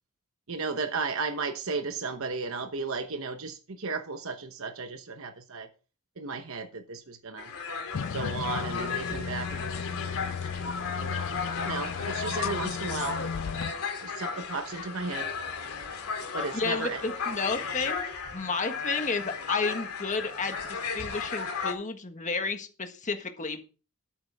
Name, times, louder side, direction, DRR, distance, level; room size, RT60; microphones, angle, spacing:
voice 1, 0.5-5.7 6.2-7.5 8.1-10.6 10.9-13.2 14.0-15.3 16.3-17.0, right 4 dB, 65° right, 1.0 m, -35 dB
sound 1, 7.4-21.7, left 5 dB, 80° left, 2.8 m, -35 dB
sound 2, 7.9-13.7, left 6 dB, 55° left, 0.4 m, -35 dB
voice 2, 16.5-18.0 18.3-23.6, left 4 dB, 35° left, 1.5 m, -32 dB
12.0 x 9.0 x 3.5 m
head